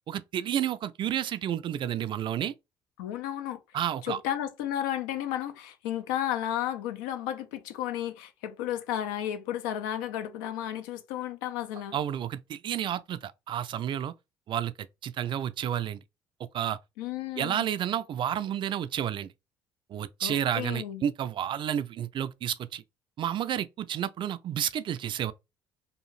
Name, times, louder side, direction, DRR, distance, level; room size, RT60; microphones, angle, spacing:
voice 1, 0.1-2.5 3.7-4.2 11.9-14.1 14.5-16.0 16.5-16.8 17.4-19.3 19.9-22.8 23.2-25.3, right 10 dB, 50° right, 0.4 m, -31 dB
voice 2, 3.0-3.6 4.0-12.0 17.0-17.7 20.2-21.0, left 11 dB, 85° left, 0.5 m, -33 dB
2.7 x 2.5 x 3.1 m
hypercardioid pair, 65°, 11 cm